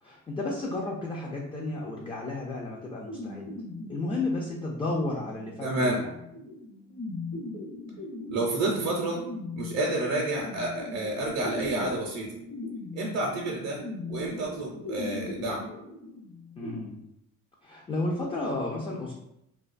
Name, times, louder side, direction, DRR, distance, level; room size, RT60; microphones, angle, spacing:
voice 1, 0.0-3.5 3.9-6.1 16.6-17.0 17.6-19.1, left 2 dB, 20° left, -2 dB, 0.3 m, -32 dB
sound 1, 3.0-16.8, left 2 dB, 50° left, 0.8 m, -40 dB
voice 2, 5.6-6.0 8.3-9.2 9.6-12.4 12.9-15.7, right 2 dB, 60° right, -1 dB, 0.6 m, -29 dB
2.4 x 2.2 x 2.4 m, 0.82 s
cardioid pair, 90°, 30 cm